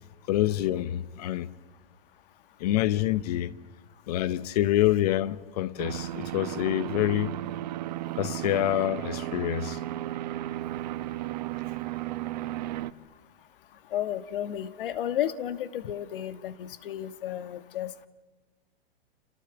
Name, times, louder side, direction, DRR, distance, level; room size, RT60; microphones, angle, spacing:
voice 1, 0.3-1.5 2.6-3.5 4.1-7.4 8.2-9.8, left 14 dB, 40° left, 0.9 m, -26 dB
sound 1, 5.8-12.9, right 14 dB, 45° right, 0.9 m, -34 dB
voice 2, 13.9-18.1, left 11 dB, 60° left, 1.5 m, -32 dB
29.5 x 28.0 x 7.0 m
hypercardioid pair, 165°, 30 cm